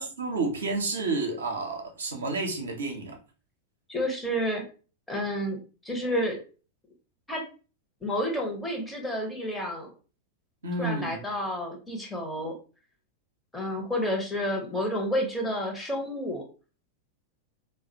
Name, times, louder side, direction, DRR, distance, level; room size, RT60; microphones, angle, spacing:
voice 1, 0.0-3.2 10.6-11.2, right 3 dB, 70° right, 1 dB, 0.5 m, -30 dB
voice 2, 3.9-4.6 5.1-5.6 5.8-6.4 7.3-7.4 8.0-9.9 10.8-12.5 13.5-16.4, equal, 10° left, 0 dB, 0.7 m, -30 dB
2.3 x 2.0 x 2.6 m, 0.35 s
figure-of-eight pair, 90°, 0 cm